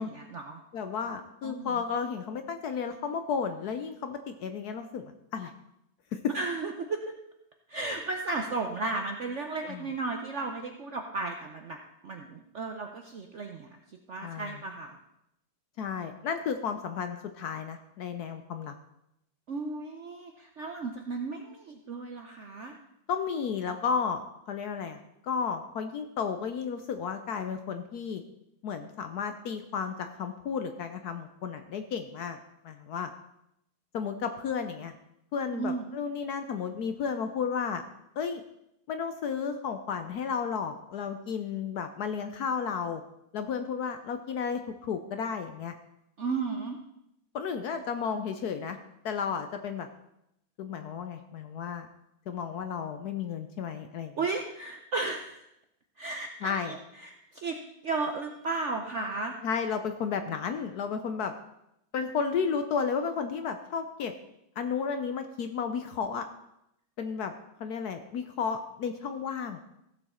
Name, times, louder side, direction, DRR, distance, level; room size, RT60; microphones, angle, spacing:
voice 1, 0.0-0.6 1.4-1.8 6.3-7.1 7.7-13.8 14.1-15.0 19.5-22.8 35.5-35.9 46.2-46.8 54.2-55.5 56.0-57.6 57.8-59.3, right 3 dB, 60° right, 3 dB, 0.7 m, -34 dB
voice 2, 0.7-5.5 6.1-6.2 9.7-9.8 14.2-14.5 15.8-18.7 23.1-24.2 24.5-25.0 25.2-28.2 28.6-32.4 32.6-33.1 33.9-34.9 35.3-37.8 38.2-38.4 38.9-43.0 43.3-45.8 47.3-48.8 49.0-49.9 50.6-51.9 52.3-54.2 56.4-56.7 59.4-61.3 61.9-64.1 64.6-66.2 67.0-67.3 67.6-69.7, left 6 dB, 65° left, 7 dB, 1.0 m, -33 dB
15.5 x 7.0 x 4.3 m, 0.82 s
omnidirectional pair, 2.1 m